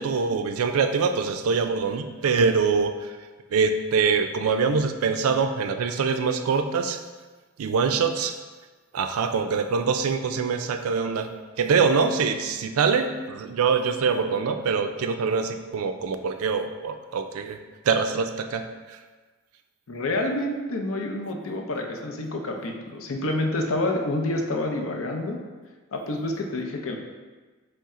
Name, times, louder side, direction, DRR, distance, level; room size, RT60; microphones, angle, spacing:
voice 1, 0.0-3.0 3.5-7.0 7.6-8.4 8.9-11.3 11.6-17.6 17.9-19.0, right 5 dB, 90° right, 8 dB, 0.4 m, -24 dB
voice 2, 19.9-25.4 25.9-27.0, left 2 dB, 70° left, 2 dB, 0.6 m, -28 dB
4.2 x 3.3 x 3.6 m, 1.3 s
head